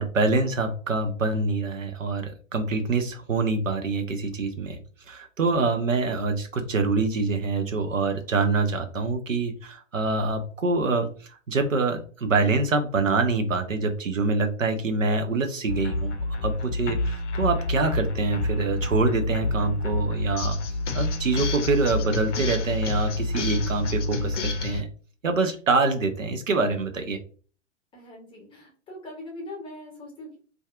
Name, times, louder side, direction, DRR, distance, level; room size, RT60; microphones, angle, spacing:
voice 1, 0.0-4.8 5.1-11.1 11.5-16.1 16.4-20.6 20.9-24.9 25.2-27.2, right 3 dB, 85° right, 6 dB, 0.6 m, -25 dB
sound 1, 15.7-24.8, left 2 dB, 70° left, 0.6 m, -28 dB
voice 2, 27.9-30.4, left 1 dB, 15° left, -1 dB, 0.6 m, -41 dB
2.6 x 2.4 x 2.3 m, 0.40 s
figure-of-eight pair, 105°, 38 cm